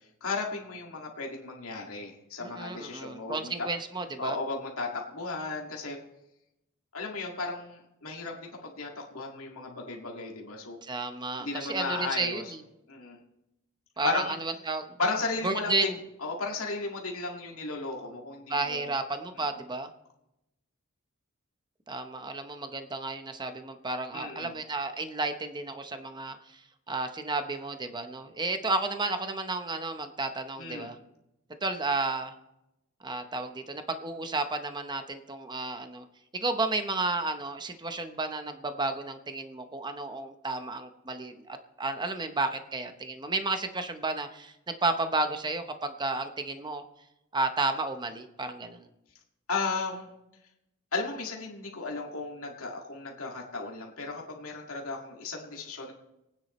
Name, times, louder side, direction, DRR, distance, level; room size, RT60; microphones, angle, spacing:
voice 1, 0.2-3.7 4.2-6.0 6.9-10.8 11.4-12.4 12.9-13.2 14.0-14.4 15.0-18.9 24.1-24.5 30.6-30.9 49.5-50.1 50.9-55.9, left 3 dB, 85° left, -1 dB, 2.1 m, -35 dB
voice 2, 2.4-4.4 10.8-12.6 14.0-14.9 15.4-16.0 18.5-19.9 21.9-26.6 26.9-31.0 31.6-32.3 33.0-36.1 36.3-46.8 47.3-48.9, right 3 dB, 20° right, 8 dB, 0.8 m, -32 dB
28.0 x 9.6 x 3.2 m, 0.89 s
head